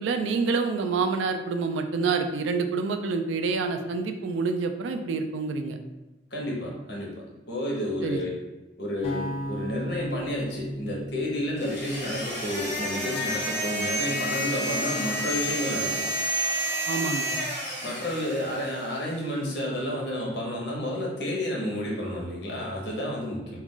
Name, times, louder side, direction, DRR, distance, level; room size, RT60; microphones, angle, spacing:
voice 1, 0.0-5.8 8.0-8.2 16.9-17.4, right 4 dB, 90° right, 6 dB, 0.3 m, -27 dB
voice 2, 6.3-7.1 7.5-8.4 8.8-16.1 17.8-23.6, equal, 65° left, -3 dB, 0.8 m, -31 dB
sound 1, 9.0-13.2, equal, 30° left, 0.4 m, -37 dB
sound 2, 11.6-18.9, equal, 10° left, 0.8 m, -30 dB
2.4 x 2.2 x 3.7 m, 1.1 s
head